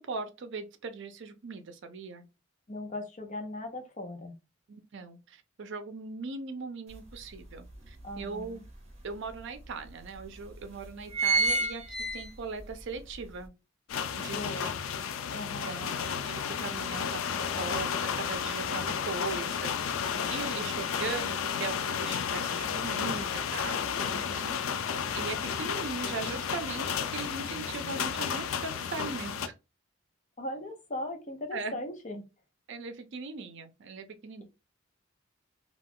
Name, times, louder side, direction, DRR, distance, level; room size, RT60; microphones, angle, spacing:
voice 1, 0.0-2.3 4.7-8.6 9.0-11.8 12.1-13.5 14.1-14.7 15.6-15.9 16.3-17.9 18.2-24.6 25.1-29.5 31.5-31.7 32.7-34.4, right 4 dB, 65° right, 0.5 m, -39 dB
voice 2, 2.7-4.3 8.0-8.6 14.3-14.7 15.3-15.7 30.4-32.2, left 1 dB, 40° left, 0.8 m, -38 dB
sound 1, 6.9-7.0 7.5-8.7 9.3-9.4 9.6-9.7 10.4-10.6 10.9-12.7 13.1-13.2, right 3 dB, 30° right, 0.9 m, -28 dB
sound 2, 13.9-29.5, left 7 dB, 85° left, 0.4 m, -32 dB
2.4 x 2.3 x 3.5 m
head